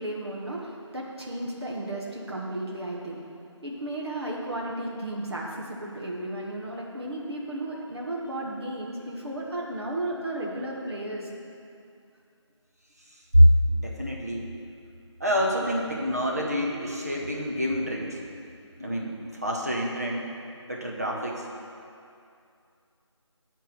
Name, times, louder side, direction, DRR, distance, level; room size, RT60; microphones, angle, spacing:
voice 1, 0.0-3.2 3.6-11.3, right 1 dB, 55° right, -3 dB, 1.4 m, -34 dB
voice 2, 13.3-14.5 15.2-18.2 18.8-19.1 19.4-20.3 20.7-21.5, equal, 30° right, -2 dB, 0.8 m, -24 dB
7.6 x 4.5 x 6.8 m, 2.5 s
figure-of-eight pair, 180°, 16 cm